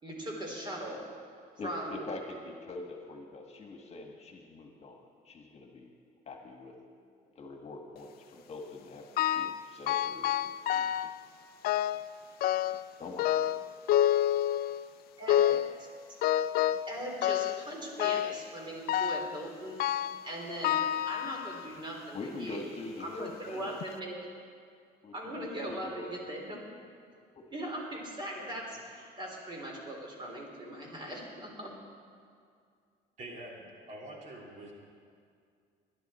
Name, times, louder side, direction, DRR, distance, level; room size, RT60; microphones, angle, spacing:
voice 1, 0.0-1.0 1.6-2.0 15.2-15.4 16.9-19.8 20.2-20.7 21.1-22.7 23.0-24.1 25.1-26.6 27.5-31.7, right 1 dB, 30° right, -1 dB, 3.7 m, -39 dB
voice 2, 1.6-5.9 6.3-6.7 7.3-10.3 10.7-11.1 13.0-13.3 15.5-15.6 22.1-23.8 25.0-26.0 27.3-27.5, left 3 dB, 40° left, 2 dB, 1.7 m, -44 dB
sound 1, 9.2-9.6 9.9-11.2 11.6-12.1 12.4-12.9 13.2-14.9 15.3-15.7 16.2-16.9 17.2-17.7 18.0-18.4 18.9-19.3 19.8-20.2 20.6-21.7 22.3-22.4 23.3-23.4 23.8-23.9, left 11 dB, 65° left, 0.4 m, -28 dB
voice 3, 33.2-34.7, right 1 dB, 45° right, -1 dB, 2.6 m, -45 dB
19.5 x 11.0 x 4.4 m, 2.2 s
cardioid pair, 110°, 17 cm